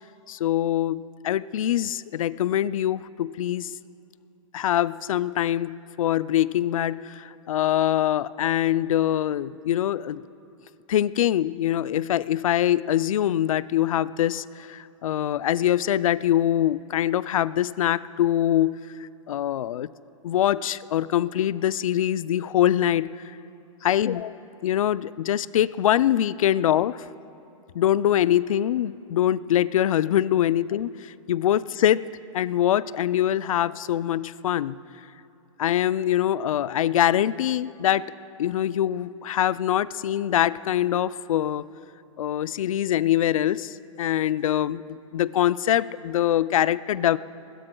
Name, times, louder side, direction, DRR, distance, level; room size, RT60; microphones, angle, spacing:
voice 1, 0.3-3.7 4.5-10.2 10.9-19.9 20.2-23.1 23.8-24.3 24.6-27.1 27.7-32.1 32.3-34.8 35.6-38.1 38.4-41.7 42.2-47.2, left 11 dB, 80° left, 17 dB, 0.4 m, -24 dB
21.5 x 20.5 x 2.3 m, 2.7 s
hypercardioid pair, 145°, 17 cm